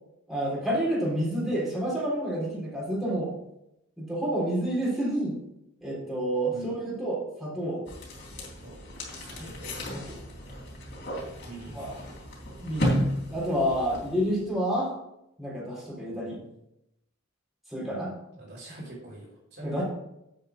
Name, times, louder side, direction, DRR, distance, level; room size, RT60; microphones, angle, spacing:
voice 1, 0.3-3.3 4.0-5.4 5.8-7.8 9.4-9.5 9.9-10.2 11.7-11.9 12.6-14.9 15.4-16.4 17.7-18.1 19.6-19.8, right 1 dB, ahead, -7 dB, 3.7 m, -29 dB
sound 1, 7.9-14.5, equal, 60° left, 3.5 m, -34 dB
voice 2, 9.2-9.9 11.4-11.8 18.3-19.8, right 2 dB, 55° right, -3 dB, 3.1 m, -43 dB
8.2 x 5.6 x 6.0 m, 0.85 s
head